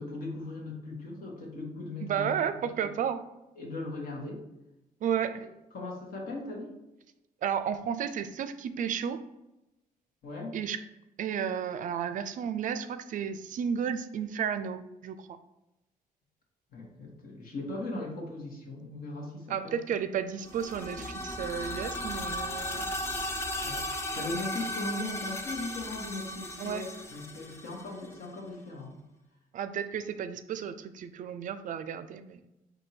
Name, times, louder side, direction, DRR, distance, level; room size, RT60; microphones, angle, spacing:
voice 1, 0.0-2.3 2.8-2.9 3.6-4.4 5.7-6.8 10.2-10.6 16.7-19.7 23.6-23.8 24.1-29.0, left 2 dB, 70° left, -1 dB, 1.4 m, -38 dB
voice 2, 2.0-3.2 5.0-5.5 7.4-9.2 10.5-10.8 11.2-15.4 19.5-22.9 26.6-26.9 29.5-32.4, right 8 dB, 60° right, 11 dB, 0.4 m, -33 dB
sound 1, 20.4-28.3, left 1 dB, 15° left, 0.5 m, -36 dB
4.5 x 2.7 x 4.3 m, 0.94 s
cardioid pair, 120°, 15 cm